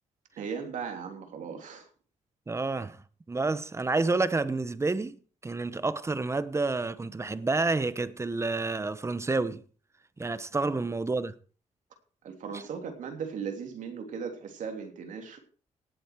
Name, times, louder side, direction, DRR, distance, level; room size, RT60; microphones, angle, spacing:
voice 1, 0.4-1.9 10.6-10.8 12.2-15.4, right 6 dB, 85° right, 3.2 m, -37 dB
voice 2, 2.5-3.0 3.3-5.2 5.4-9.6 10.2-11.3, right 3 dB, 20° right, 1.0 m, -29 dB
18.0 x 8.4 x 4.6 m
cardioid pair, 100°, 13 cm